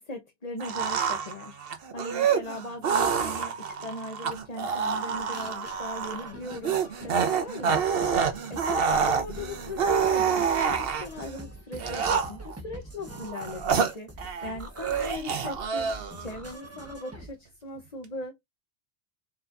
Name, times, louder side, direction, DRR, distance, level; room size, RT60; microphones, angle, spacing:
voice 1, 0.0-1.6 1.9-7.8 8.1-18.3, left 2 dB, 40° left, 1.1 m, -39 dB
sound 1, 0.6-11.2 11.8-12.6 13.1-14.5 14.8-16.3, right 6 dB, 65° right, 1.1 m, -27 dB
sound 2, 2.7-4.0 4.3-4.4 4.8-17.3, right 1 dB, 15° right, 1.1 m, -44 dB
4.4 x 4.3 x 2.5 m
omnidirectional pair, 1.1 m